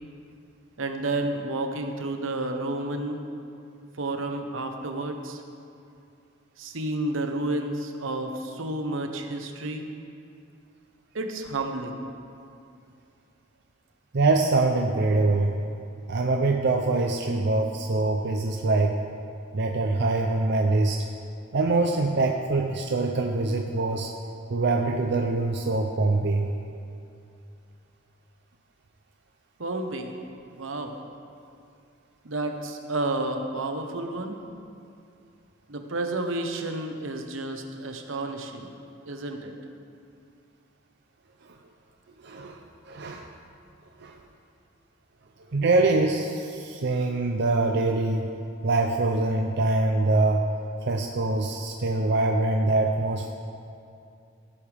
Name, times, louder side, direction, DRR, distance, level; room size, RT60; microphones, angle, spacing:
voice 1, 0.8-3.2 4.0-5.4 6.6-9.9 11.1-12.0 29.6-30.1 30.6-31.0 32.2-34.4 35.7-38.7 39.0-39.5, right 2 dB, 80° right, 5 dB, 1.0 m, -31 dB
voice 2, 14.1-15.5 16.1-19.0 19.5-21.0 21.5-24.1 24.5-26.5 41.5-41.6 42.2-42.6 42.9-43.3 44.0-44.2 45.5-48.3 48.6-50.4 50.9-53.3, right 2 dB, 60° right, 2 dB, 0.6 m, -24 dB
17.5 x 8.5 x 3.5 m, 2.5 s
head